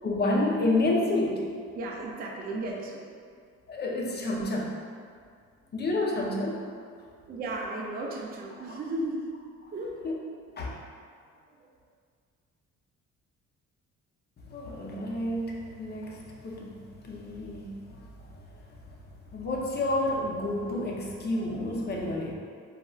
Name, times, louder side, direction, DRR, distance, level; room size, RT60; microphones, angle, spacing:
voice 1, 0.0-1.5 3.7-4.7 5.7-6.6 8.6-8.8 9.6-9.7 10.0-10.2 10.6-10.7 14.5-22.3, left 2 dB, 35° left, -2 dB, 0.5 m, -30 dB
voice 2, 1.8-3.1 7.3-9.3 9.7-10.0, right 2 dB, 30° right, -2 dB, 0.4 m, -34 dB
3.7 x 2.1 x 2.3 m, 2.1 s
cardioid pair, 90°, 30 cm